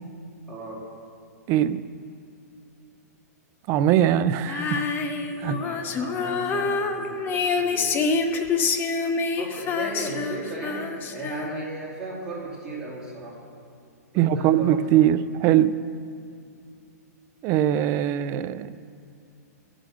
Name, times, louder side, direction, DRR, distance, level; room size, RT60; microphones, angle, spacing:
voice 1, 0.5-0.9 5.3-8.1 9.4-13.4 14.1-14.8, right 2 dB, 5° right, -9 dB, 2.5 m, -36 dB
voice 2, 1.5-1.8 3.7-4.8 5.4-5.6 14.2-15.8 17.4-18.7, right 11 dB, 30° right, 14 dB, 0.3 m, -21 dB
Female singing, 4.5-11.8, left 4 dB, 20° left, 0.6 m, -27 dB
14.5 x 5.0 x 6.4 m, 2.4 s
hypercardioid pair, 140°, 9 cm